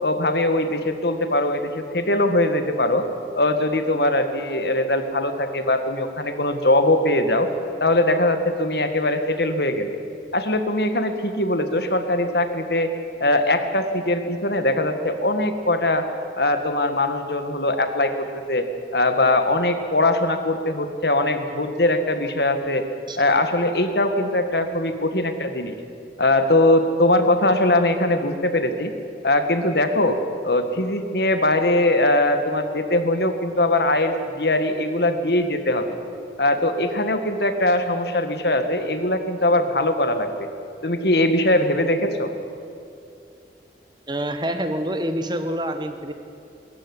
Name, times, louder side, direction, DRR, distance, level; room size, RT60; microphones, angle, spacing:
voice 1, 0.0-3.1 3.3-7.5 7.8-10.0 10.3-12.9 13.2-16.1 16.4-18.7 18.9-22.8 23.2-25.8 26.2-28.9 29.2-30.2 30.4-36.0 36.4-40.5 40.8-42.3, left 1 dB, 65° left, 8 dB, 1.8 m, -21 dB
voice 2, 44.1-46.1, equal, 25° right, 7 dB, 1.5 m, -26 dB
22.0 x 14.5 x 9.9 m, 2.6 s
head